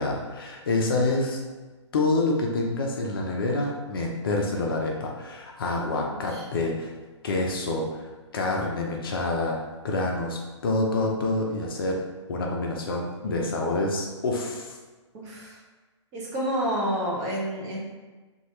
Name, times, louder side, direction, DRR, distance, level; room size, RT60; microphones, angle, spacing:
voice 1, 0.0-1.4 1.9-6.9 7.2-9.6 9.8-12.0 12.3-14.8, left 2 dB, 50° left, 0 dB, 0.5 m, -27 dB
voice 2, 15.1-15.6 16.1-17.8, equal, 25° right, -4 dB, 0.7 m, -29 dB
2.8 x 2.3 x 3.0 m, 1.3 s
figure-of-eight pair, 120°, 16 cm